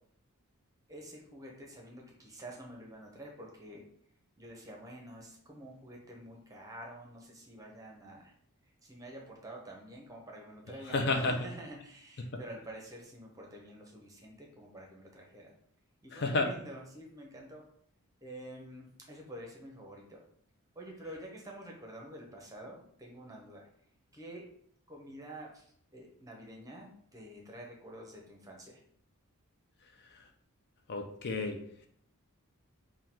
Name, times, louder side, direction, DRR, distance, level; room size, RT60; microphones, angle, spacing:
voice 1, 0.9-3.8 4.4-8.3 8.8-15.5 16.0-17.6 18.2-20.2 20.7-23.7 24.1-24.5 24.9-25.6 25.9-28.8, right 1 dB, 15° right, 0 dB, 0.7 m, -48 dB
voice 2, 10.9-11.4 16.1-16.5 30.9-31.6, left 3 dB, 50° left, 4 dB, 0.4 m, -30 dB
3.7 x 2.2 x 4.3 m, 0.65 s
head